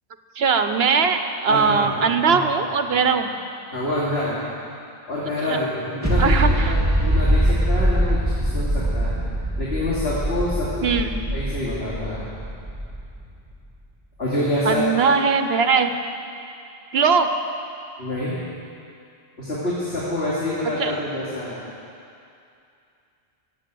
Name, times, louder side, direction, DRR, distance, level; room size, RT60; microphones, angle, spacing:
voice 1, 0.4-3.3 5.5-5.6 6.2-6.7 10.8-11.2 14.7-15.9 16.9-17.3 20.8-21.0, right 5 dB, 75° right, 8 dB, 1.1 m, -20 dB
voice 2, 1.5-2.0 2.2-2.5 2.9-3.0 3.7-4.4 5.1-9.1 9.6-10.9 11.3-12.2 14.2-14.8 18.0-18.4 19.4-21.6, left 1 dB, 80° left, -8 dB, 3.0 m, -27 dB
sound 1, 6.0-13.6, right 1 dB, 15° right, 2.6 m, -22 dB
22.0 x 8.3 x 7.7 m, 2.5 s
omnidirectional pair, 1.0 m